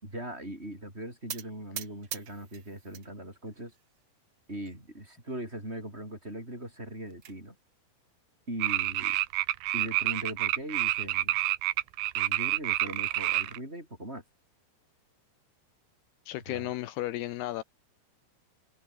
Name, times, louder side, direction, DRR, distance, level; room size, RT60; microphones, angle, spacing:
voice 1, 0.0-3.7 4.5-7.5 8.5-9.2 9.7-11.4 12.1-14.2 16.5-16.7, right 1 dB, 15° right, 7.5 m, -40 dB
sound 1, 1.3-3.1 3.5-4.1 4.6-4.8 5.0-5.1 5.5-5.6 6.7-7.4, right 10 dB, 65° right, 1.4 m, -42 dB
sound 2, 8.6-13.6, right 17 dB, 80° right, 3.0 m, -28 dB
voice 2, 16.3-17.6, left 15 dB, 80° left, 2.9 m, -34 dB
omnidirectional pair, 4.8 m